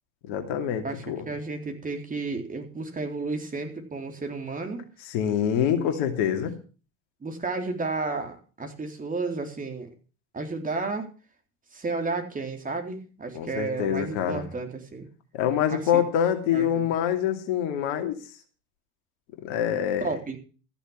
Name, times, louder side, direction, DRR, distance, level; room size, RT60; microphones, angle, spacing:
voice 1, 0.2-1.3 5.1-6.5 13.3-14.5 15.3-18.2 19.4-20.1, left 9 dB, 60° left, 5 dB, 2.7 m, -25 dB
voice 2, 0.8-4.8 5.6-5.9 7.2-9.9 10.3-11.1 11.7-15.1 15.7-16.0 16.5-16.9 20.0-20.4, right 3 dB, 20° right, 4 dB, 3.9 m, -32 dB
14.5 x 7.1 x 7.5 m, 0.37 s
hypercardioid pair, 75°, 36 cm